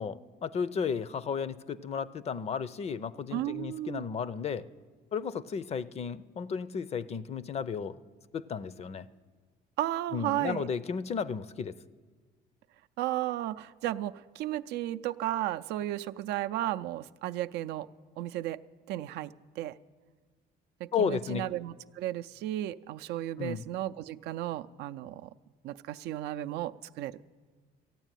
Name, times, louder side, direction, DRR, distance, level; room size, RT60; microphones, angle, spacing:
voice 1, 0.0-4.6 5.1-8.0 8.3-9.1 10.1-11.8 20.9-21.4 23.4-23.6, left 6 dB, 40° left, 18 dB, 0.5 m, -33 dB
voice 2, 3.3-4.1 9.8-10.7 13.0-17.9 18.2-18.6 18.9-19.8 20.8-25.3 25.6-27.2, right 14 dB, 80° right, 10 dB, 0.4 m, -34 dB
14.5 x 9.1 x 9.0 m, 1.5 s
cardioid pair, 110°, 17 cm